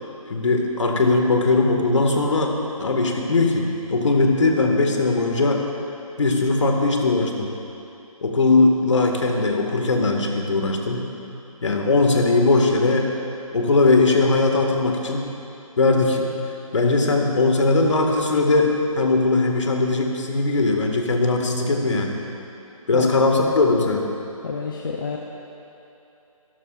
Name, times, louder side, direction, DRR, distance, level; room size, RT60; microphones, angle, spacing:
voice 1, 0.3-5.7 6.2-7.5 8.2-11.1 11.6-13.1 13.5-15.3 15.8-16.3 16.7-22.2 22.9-24.1, left 3 dB, 55° left, 2 dB, 1.9 m, -20 dB
voice 2, 24.4-25.2, left 5 dB, 35° left, 0 dB, 0.8 m, -29 dB
24.5 x 13.0 x 2.5 m, 2.9 s
figure-of-eight pair, 160°, 19 cm